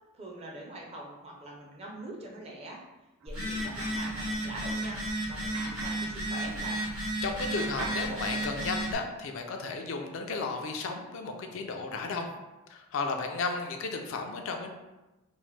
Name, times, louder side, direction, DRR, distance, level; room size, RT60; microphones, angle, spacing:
voice 1, 0.1-2.8 3.2-6.9, right 1 dB, 30° right, -2 dB, 0.5 m, -43 dB
sound 1, 3.2-7.2 7.6-9.0, right 3 dB, 90° right, 0.4 m, -46 dB
Telephone, 3.3-8.9, right 1 dB, 75° right, 1.1 m, -33 dB
voice 2, 7.2-12.3 12.7-14.7, left 4 dB, 65° left, 4 dB, 0.3 m, -34 dB
3.0 x 2.1 x 3.1 m, 1.1 s
head